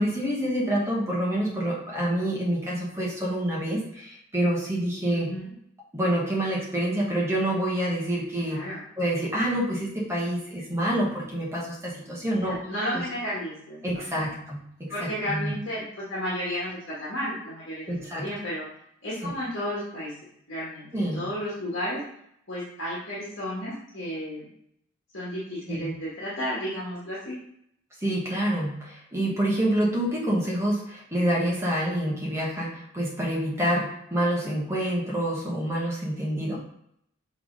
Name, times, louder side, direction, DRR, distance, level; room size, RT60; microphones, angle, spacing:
voice 1, 0.0-5.3 5.9-8.6 9.0-12.6 13.8-15.5 17.9-18.2 19.2-19.3 20.9-21.2 25.7-25.9 28.0-36.6, right 1 dB, 15° right, -4 dB, 1.4 m, -27 dB
voice 2, 5.1-5.5 8.4-8.8 12.3-13.8 14.1-14.3 14.9-18.7 19.0-20.1 20.5-22.1 22.5-24.5 25.1-27.4, equal, 65° left, -7 dB, 1.6 m, -33 dB
6.9 x 3.4 x 3.9 m, 0.74 s
head